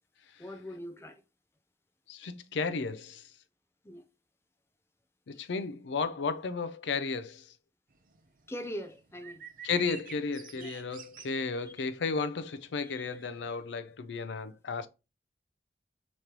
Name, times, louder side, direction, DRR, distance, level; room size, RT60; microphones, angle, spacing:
voice 1, 0.4-1.2 3.8-4.0 5.3-5.4 8.5-9.4 10.5-10.7 11.6-11.7 12.8-13.1, equal, 15° left, 0.5 m, -42 dB
voice 2, 2.1-3.3 5.3-7.5 9.6-14.9, left 4 dB, 85° left, 0.5 m, -33 dB
sound 1, 7.9-13.6, right 7 dB, 50° right, 0.5 m, -50 dB
5.2 x 3.1 x 2.9 m
head